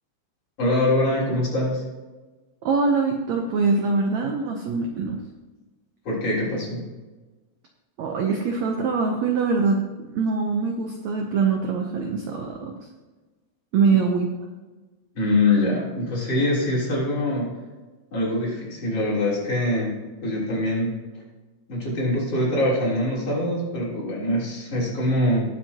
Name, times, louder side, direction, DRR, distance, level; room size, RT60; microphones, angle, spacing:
voice 1, 0.6-1.8 6.0-6.8 13.9-14.0 15.1-17.5 18.1-19.9 20.2-20.9 21.7-25.5, left 1 dB, 40° left, -7 dB, 4.6 m, -23 dB
voice 2, 2.6-5.2 8.0-9.8 10.1-12.7 13.7-14.3, right 4 dB, 80° right, 2 dB, 1.5 m, -23 dB
19.0 x 7.5 x 3.0 m, 1.2 s
omnidirectional pair, 4.5 m